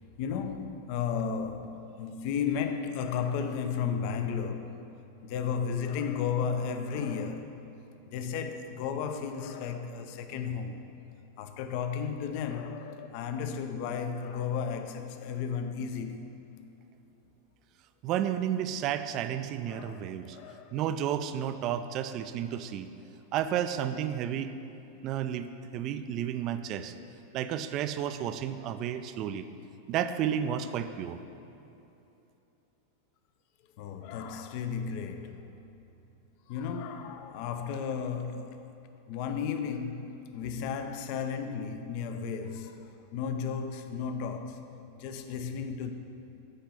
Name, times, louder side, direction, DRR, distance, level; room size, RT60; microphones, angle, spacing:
voice 1, 0.2-4.8 5.2-7.6 8.1-10.8 11.4-16.3 19.7-20.8 33.8-35.7 36.5-38.6 39.1-44.6 45.0-45.9, left 6 dB, 45° left, 0.5 m, -34 dB
voice 2, 18.0-20.4 20.7-22.9 23.3-24.5 25.0-26.9 27.3-29.5 29.9-31.2, right 10 dB, 40° right, 0.3 m, -32 dB
8.9 x 4.4 x 5.1 m
figure-of-eight pair, 90°, 0 cm